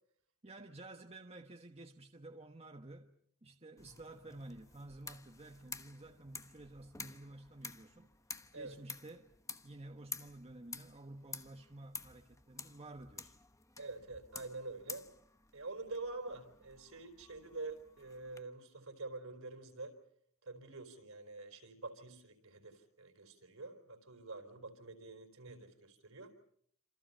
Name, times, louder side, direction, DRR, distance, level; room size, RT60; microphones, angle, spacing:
voice 1, 0.4-3.1 3.4-8.1 8.5-9.3 9.6-13.3, right 2 dB, 30° right, 1.3 m, -52 dB
sound 1, 3.8-18.4, left 4 dB, 15° left, 1.0 m, -51 dB
voice 2, 13.8-15.1 15.5-20.0 20.4-26.3, right 3 dB, 65° right, 4.4 m, -47 dB
28.0 x 27.5 x 5.6 m
head